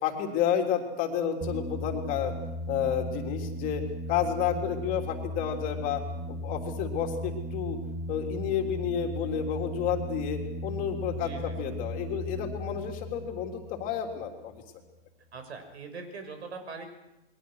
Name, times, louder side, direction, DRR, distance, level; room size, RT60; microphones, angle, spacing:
voice 1, 0.0-2.3 2.7-3.8 4.1-6.0 6.3-7.8 8.1-14.6, left 8 dB, 25° left, 3 dB, 3.2 m, -30 dB
sound 1, 1.4-14.6, equal, 15° right, 1.5 m, -37 dB
voice 2, 11.1-11.7 15.3-16.8, right 4 dB, 80° right, 6 dB, 6.6 m, -42 dB
28.0 x 23.0 x 6.4 m, 0.92 s
hypercardioid pair, 155°, 33 cm